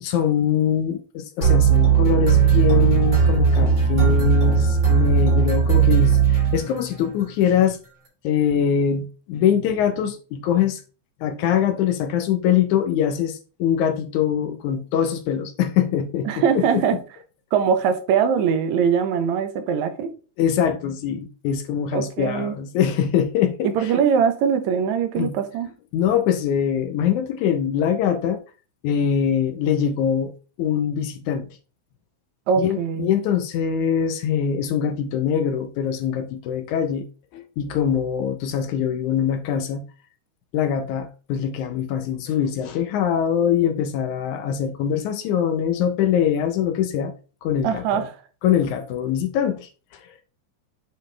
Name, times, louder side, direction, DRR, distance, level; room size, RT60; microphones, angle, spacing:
voice 1, 0.0-7.8 8.2-10.8 11.2-16.8 20.4-23.9 25.2-25.3 25.9-28.4 28.8-30.3 30.6-31.5 32.6-37.1 37.3-39.9 40.5-47.1 47.4-48.1 48.4-49.7, left 8 dB, 75° left, 2.0 m, -23 dB
sound 1, 1.4-7.1, right 6 dB, 35° right, 2.9 m, -17 dB
voice 2, 16.3-17.0 17.5-20.1 21.9-22.6 23.6-25.7 32.5-33.1 47.6-48.1, right 7 dB, 70° right, 2.0 m, -22 dB
9.1 x 4.0 x 3.3 m
omnidirectional pair, 3.8 m